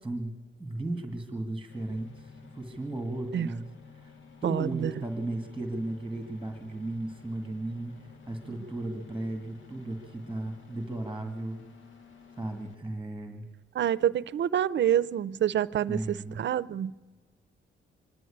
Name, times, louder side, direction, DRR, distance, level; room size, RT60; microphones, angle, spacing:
voice 1, 0.0-0.3 0.6-4.1 4.4-11.6 12.4-13.5 15.9-16.4, right 2 dB, 5° right, 5 dB, 2.0 m, -35 dB
sound 1, 1.7-12.7, left 5 dB, 75° left, 1.8 m, -53 dB
voice 2, 4.4-4.9 13.7-16.9, right 10 dB, 65° right, 17 dB, 0.6 m, -27 dB
24.0 x 11.0 x 10.0 m, 1.3 s
cardioid pair, 110°, 20 cm